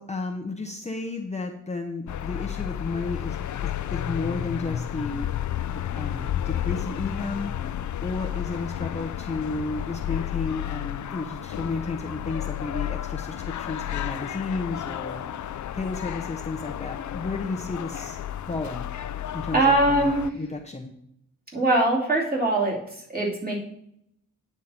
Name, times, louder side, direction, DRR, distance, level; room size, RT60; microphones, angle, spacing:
voice 1, 0.0-3.4 3.6-5.3 6.0-18.2 18.5-18.9 19.3-20.9, left 3 dB, 20° left, 2 dB, 0.7 m, -33 dB
sound 1, 2.1-20.3, left 11 dB, 65° left, 0.5 m, -32 dB
voice 2, 19.5-20.3 21.5-22.8 23.1-23.6, right 2 dB, 25° right, -3 dB, 3.1 m, -22 dB
9.4 x 7.2 x 4.3 m, 0.76 s
wide cardioid pair, 105°, 33 cm